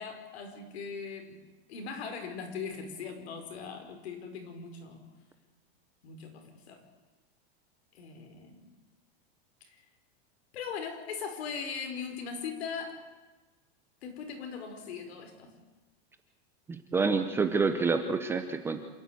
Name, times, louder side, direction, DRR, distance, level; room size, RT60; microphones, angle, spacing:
voice 1, 0.0-1.4 1.7-5.0 6.0-6.8 7.9-8.7 9.6-9.8 10.5-13.0 14.0-15.5, left 6 dB, 75° left, 5 dB, 5.0 m, -40 dB
voice 2, 16.7-18.8, right 4 dB, 5° right, 7 dB, 0.6 m, -28 dB
27.5 x 12.5 x 9.4 m, 1.2 s
supercardioid pair, 175°, 32 cm